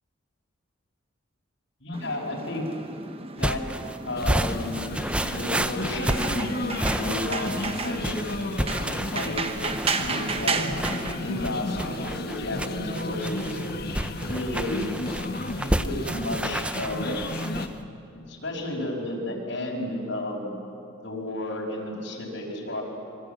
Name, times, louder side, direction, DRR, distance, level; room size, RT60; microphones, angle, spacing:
voice 1, 1.8-2.7 3.4-3.6 4.0-4.7 5.3-8.2 9.1-9.4 10.0-10.6 11.2-13.6 14.3-14.8 15.6-17.2 18.3-20.5 21.0-22.8, left 1 dB, 65° left, -3 dB, 5.6 m, -32 dB
sound 1, 1.9-12.0, right 4 dB, 30° right, 1.1 m, -34 dB
sound 2, 3.4-17.7, right 1 dB, 5° right, 0.6 m, -31 dB
sound 3, 4.2-17.7, left 2 dB, 50° left, 1.5 m, -33 dB
26.0 x 24.5 x 8.3 m, 2.5 s
head